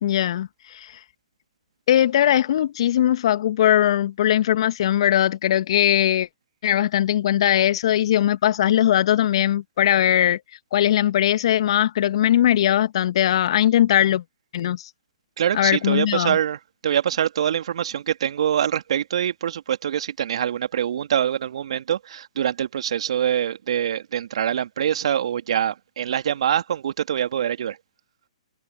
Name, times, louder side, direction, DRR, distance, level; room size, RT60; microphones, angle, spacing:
voice 1, 0.0-0.9 1.9-6.3 6.6-10.4 10.7-14.2 14.5-14.9 15.5-16.4, left 11 dB, 50° left, 1.9 m, -20 dB
voice 2, 15.4-27.8, right 9 dB, 55° right, 2.4 m, -24 dB
figure-of-eight pair, 130°, 4 cm